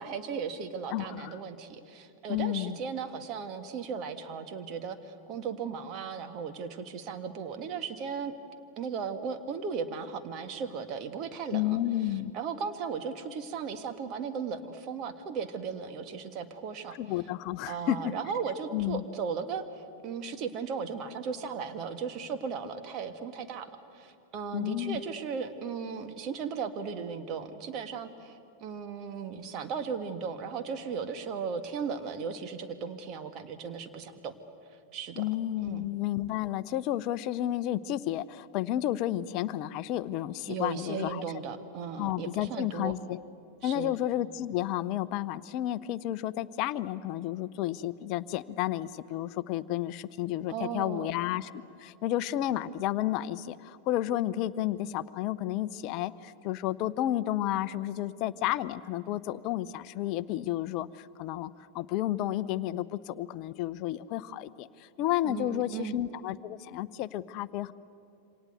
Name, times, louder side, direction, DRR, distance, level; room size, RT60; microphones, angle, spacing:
voice 1, 0.0-8.3 8.8-11.8 12.3-17.0 17.7-19.6 20.0-34.3 34.9-35.2 35.6-35.9 40.5-42.9 43.6-44.0 50.5-51.1 65.2-66.0, right 6 dB, 35° right, 8 dB, 1.8 m, -36 dB
voice 2, 0.9-1.3 2.3-2.8 11.5-12.3 16.9-18.1 18.7-19.0 24.5-25.0 35.2-41.2 42.0-43.2 43.6-67.7, left 13 dB, 40° left, 17 dB, 0.7 m, -31 dB
27.5 x 25.5 x 8.1 m, 2.6 s
figure-of-eight pair, 90°, 0 cm